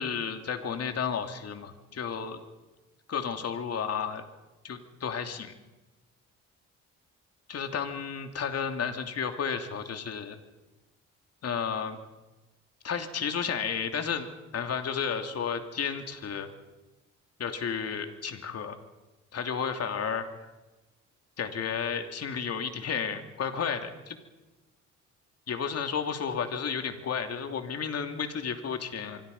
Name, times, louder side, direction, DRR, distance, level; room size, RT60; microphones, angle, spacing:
voice 1, 0.0-2.4 3.1-4.2 4.6-5.5 7.5-10.4 11.4-12.0 12.8-14.3 14.5-16.5 17.4-18.8 19.3-20.3 21.4-24.2 25.5-29.2, left 6 dB, 55° left, 6 dB, 2.9 m, -32 dB
26.0 x 24.0 x 5.5 m, 1.1 s
cardioid pair, 90°, 30 cm